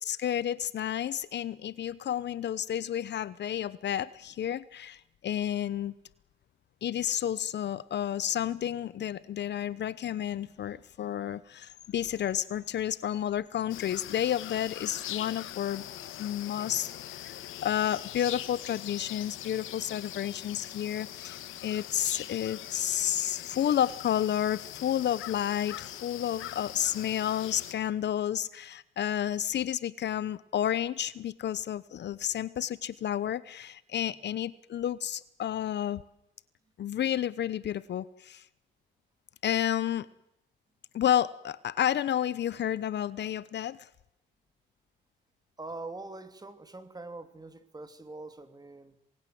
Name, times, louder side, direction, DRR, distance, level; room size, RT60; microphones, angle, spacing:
voice 1, 0.0-5.9 6.8-15.8 16.2-36.0 36.8-38.4 39.4-40.1 40.9-43.9, left 10 dB, 60° left, 18 dB, 1.0 m, -31 dB
sound 1, 13.7-27.7, left 13 dB, 85° left, 1.7 m, -42 dB
voice 2, 45.6-49.0, right 2 dB, 20° right, 10 dB, 3.0 m, -43 dB
27.5 x 20.0 x 7.9 m, 0.83 s
cardioid pair, 90°, 20 cm